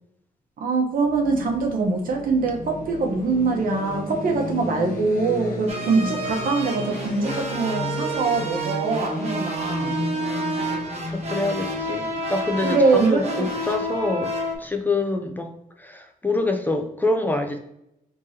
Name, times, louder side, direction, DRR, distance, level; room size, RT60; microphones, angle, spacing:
voice 1, 0.6-10.0 12.6-13.5, right 4 dB, 80° right, 1 dB, 1.0 m, -23 dB
sound 1, 0.9-14.8, left 2 dB, 75° left, 1.0 m, -34 dB
sound 2, 5.7-14.5, right 1 dB, 45° right, 1.1 m, -30 dB
voice 2, 11.1-14.3 14.6-15.5 15.8-17.6, left 2 dB, 15° left, 4 dB, 0.4 m, -26 dB
4.9 x 3.6 x 2.8 m, 0.82 s
wide cardioid pair, 170°, 14 cm